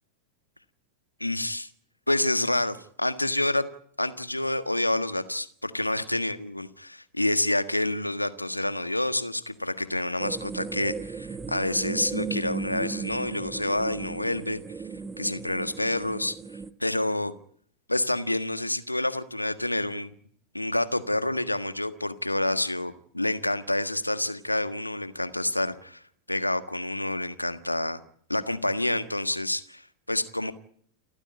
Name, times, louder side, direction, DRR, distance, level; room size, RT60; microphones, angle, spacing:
voice 1, 1.2-1.7 2.1-3.6 4.0-14.6 15.2-16.3 16.8-17.3 17.9-20.1 20.5-26.0 26.3-28.0 28.3-30.5, left 1 dB, 85° left, 12 dB, 1.5 m, -28 dB
sound 1, 10.2-16.7, right 5 dB, 15° right, 1.3 m, -36 dB
29.0 x 14.5 x 9.7 m, 0.62 s
figure-of-eight pair, 90°, 0 cm